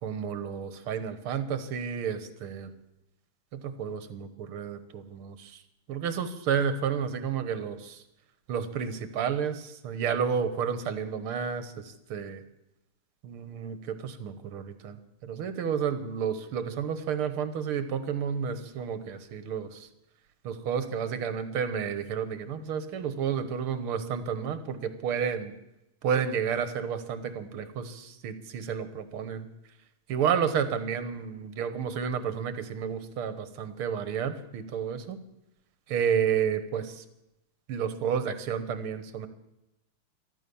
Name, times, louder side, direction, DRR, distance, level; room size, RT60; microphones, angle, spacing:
voice 1, 0.0-2.7 3.5-5.6 5.9-8.0 8.5-12.4 13.2-15.0 15.2-19.9 20.4-25.5 26.0-29.5 30.1-35.2 35.9-37.0 37.7-39.3, right 7 dB, 75° right, 11 dB, 2.1 m, -31 dB
13.5 x 13.0 x 7.0 m, 0.89 s
omnidirectional pair, 2.4 m